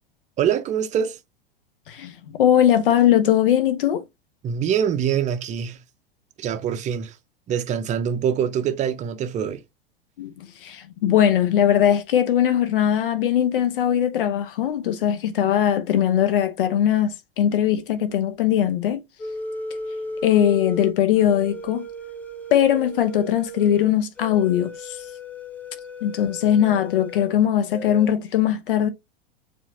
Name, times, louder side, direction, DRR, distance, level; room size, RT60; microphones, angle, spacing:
voice 1, 0.4-1.2 4.4-5.8 6.4-7.2 7.5-9.6, right 8 dB, 25° right, 0.7 m, -24 dB
voice 2, 2.4-4.0 10.2-19.0 20.2-21.8 22.5-25.0 26.0-28.9, left 10 dB, 60° left, 0.9 m, -20 dB
sound 1, 19.2-27.3 27.7-28.1, left 1 dB, 5° left, 0.9 m, -35 dB
7.1 x 2.7 x 2.7 m
figure-of-eight pair, 85°, 30 cm